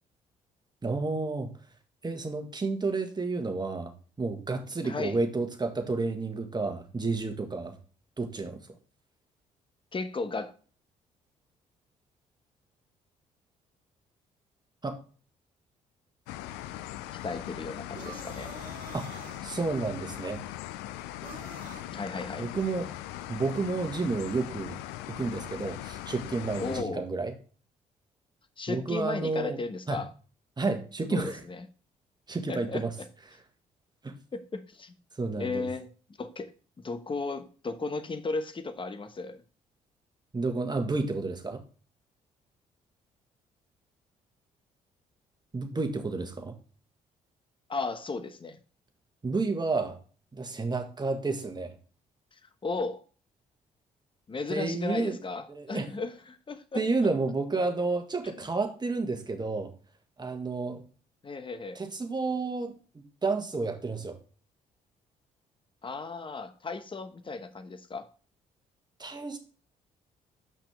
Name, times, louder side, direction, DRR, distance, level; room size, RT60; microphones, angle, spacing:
voice 1, 0.8-1.5 2.0-3.9 4.2-7.8 8.2-8.6 14.8-15.0 18.9-19.1 19.4-20.4 22.4-22.9 23.3-24.8 25.1-27.3 28.7-29.6 29.9-30.0 30.6-31.4 32.3-32.9 34.0-34.1 35.2-35.7 40.3-41.6 45.5-46.6 49.2-50.0 50.3-51.7 54.5-55.2 55.5-55.9 56.7-59.7 60.2-60.8 61.7-64.2 69.0-69.4, right 3 dB, 25° right, 1.6 m, -30 dB
voice 2, 4.8-5.2 9.9-10.5 17.1-18.5 21.9-22.5 26.6-27.1 28.6-30.1 31.1-31.6 32.5-32.8 34.3-34.9 35.4-35.9 36.2-36.5 36.8-39.4 47.7-48.6 52.3-53.0 54.3-56.8 58.2-58.5 61.2-61.8 65.8-68.1, left 3 dB, 30° left, 1.0 m, -35 dB
sound 1, 16.3-26.8, left 14 dB, 70° left, 0.5 m, -40 dB
sound 2, 17.9-19.4 21.2-21.9, right 5 dB, 55° right, 1.7 m, -46 dB
7.2 x 5.8 x 3.5 m
hypercardioid pair, 45°, 18 cm